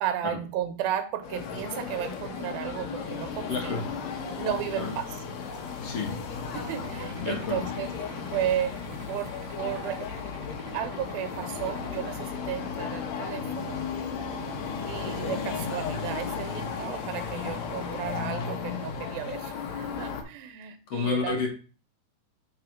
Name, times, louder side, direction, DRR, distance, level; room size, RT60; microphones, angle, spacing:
voice 1, 0.0-3.9 4.4-5.2 6.5-7.9 8.3-8.8 9.1-10.1 10.7-13.8 14.9-21.4, right 10 dB, 75° right, 7 dB, 2.6 m, -34 dB
sound 1, 1.2-20.2, left 6 dB, 90° left, 1.5 m, -35 dB
voice 2, 3.5-3.9 4.7-4.9 5.8-6.2 7.2-7.6 20.9-21.5, left 4 dB, 60° left, 1 dB, 1.7 m, -29 dB
sound 2, 6.7-12.0, right 6 dB, 50° right, 1.5 m, -49 dB
5.6 x 3.9 x 5.8 m, 0.35 s
omnidirectional pair, 4.6 m